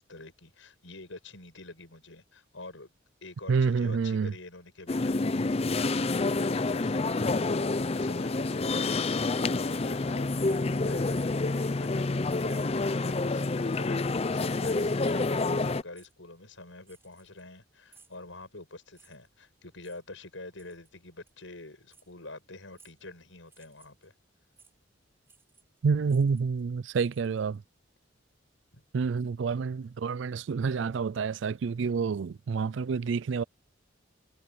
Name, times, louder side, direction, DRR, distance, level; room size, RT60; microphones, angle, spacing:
voice 1, 0.0-2.9 3.2-5.3 5.7-24.1 28.7-28.8, left 2 dB, 80° left, 6.4 m, -47 dB
voice 2, 3.5-4.3 25.8-27.6 28.9-33.4, right 5 dB, 65° right, 0.4 m, -28 dB
sound 1, 4.9-15.8, left 3 dB, 30° left, 0.5 m, -28 dB
sound 2, 10.4-11.5 11.8-12.0 12.4-13.3 13.7-14.1 15.0-15.3 15.9-16.1 16.8-17.6 17.9-18.2 18.9-19.3 19.8-20.0 20.6-20.9 21.3-21.4 21.9-22.1 22.7-23.1 23.4-24.1 24.6-24.7 25.2-25.8 26.0-27.6, right 4 dB, 10° right, 7.2 m, -60 dB
head